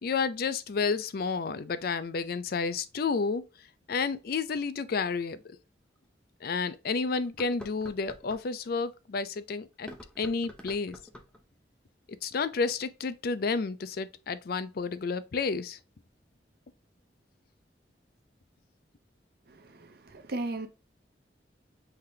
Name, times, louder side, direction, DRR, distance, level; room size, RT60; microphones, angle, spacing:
voice 1, 0.0-3.4 3.9-5.6 6.4-9.9 10.2-11.0 12.1-15.8, left 4 dB, 55° left, 0.4 m, -31 dB
sound 1, 5.3-5.4 6.0-6.1 7.2-8.5 9.7-11.4, equal, 5° left, 0.6 m, -47 dB
voice 2, 19.5-20.7, right 2 dB, 60° right, 0.7 m, -36 dB
5.7 x 3.4 x 2.7 m
head